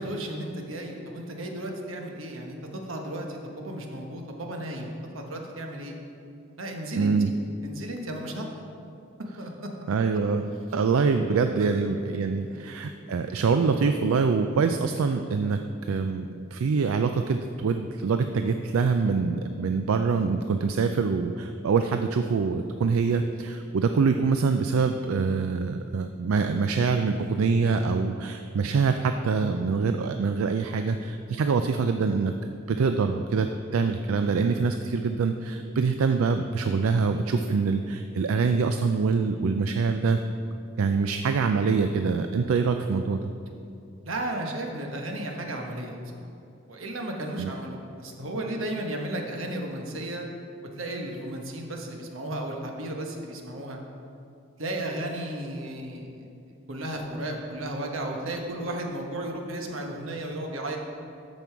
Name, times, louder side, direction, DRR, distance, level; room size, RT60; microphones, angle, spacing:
voice 1, 0.0-6.0 6.6-7.3 7.6-8.4 9.4-9.7 11.6-11.9 12.4-12.6 44.0-46.0 46.7-50.3 50.6-53.8 54.6-56.3 56.7-60.8, right 1 dB, 75° right, 2 dB, 1.2 m, -34 dB
voice 2, 7.0-7.3 9.9-10.4 10.7-32.3 32.7-40.2 40.8-43.3 47.4-47.5, right 5 dB, 90° right, 7 dB, 0.4 m, -25 dB
13.0 x 5.4 x 4.6 m, 2.6 s
head